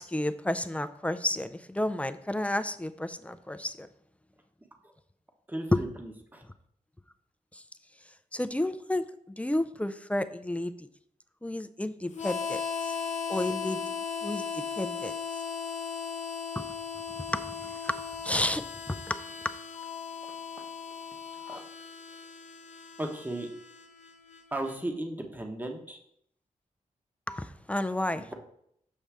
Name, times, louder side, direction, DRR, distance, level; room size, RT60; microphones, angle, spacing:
voice 1, 0.0-3.9 5.7-5.8 7.5-7.6 8.3-9.0 9.4-10.9 11.4-12.9 13.3-13.8 14.2-15.1 16.6-16.7 17.3-19.3 27.3-28.3, left 1 dB, 10° left, 11 dB, 0.4 m, -31 dB
voice 2, 5.5-6.4 21.5-21.6 23.0-23.5 24.5-26.0 28.1-28.3, right 1 dB, 15° right, 3 dB, 1.0 m, -36 dB
Harmonica, 12.1-24.8, left 6 dB, 60° left, 0.7 m, -37 dB
7.3 x 5.3 x 3.4 m, 0.71 s
cardioid pair, 75°, 14 cm